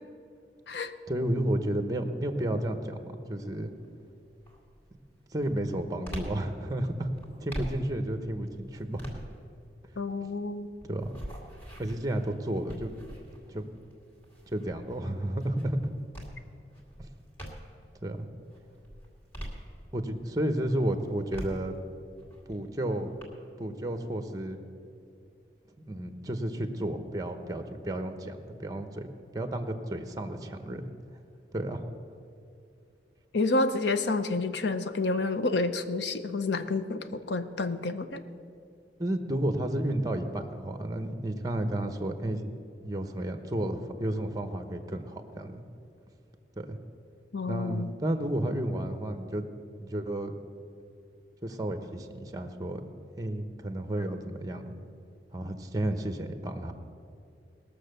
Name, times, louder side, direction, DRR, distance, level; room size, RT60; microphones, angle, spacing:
voice 1, 1.1-3.7 5.3-7.1 7.4-9.0 10.8-11.1 11.8-12.9 13.5-13.6 14.5-15.8 17.0-17.1 18.0-18.3 19.9-21.7 22.5-23.1 23.6-24.6 25.9-30.8 31.5-31.8 39.0-42.5 42.8-45.6 46.6-46.8 47.5-49.5 49.8-50.3 51.4-52.8 53.2-54.7 55.3-56.7, right 1 dB, 20° right, 8 dB, 0.9 m, -32 dB
sound 1, 3.5-3.9 4.4-17.9 18.4-20.2 20.6-23.2, equal, 10° left, 2.3 m, -44 dB
voice 2, 10.0-10.7 33.3-38.2 47.3-47.9, left 3 dB, 80° left, 10 dB, 0.7 m, -29 dB
19.5 x 6.8 x 6.6 m, 2.5 s
head